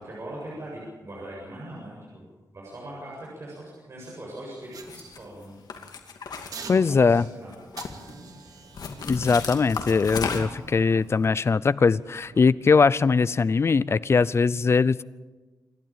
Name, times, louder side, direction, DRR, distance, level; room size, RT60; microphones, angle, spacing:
voice 1, 0.0-2.2 2.5-5.6 6.6-7.6, right 1 dB, 40° right, -4 dB, 7.6 m, -40 dB
sound 1, 4.7-5.7 6.5-7.3 7.8-11.0 11.5-11.7, right 5 dB, 65° right, 2.4 m, -46 dB
sound 2, 4.8-5.2 5.7-7.2 7.5-8.1 8.7-10.7, left 5 dB, 70° left, 2.5 m, -34 dB
voice 2, 6.7-7.3 9.0-15.0, left 5 dB, 40° left, 19 dB, 0.6 m, -21 dB
sound 3, 8.1-13.7, right 2 dB, 85° right, 5.6 m, -52 dB
27.5 x 12.5 x 8.9 m, 1.3 s
wide cardioid pair, 120°, 7 cm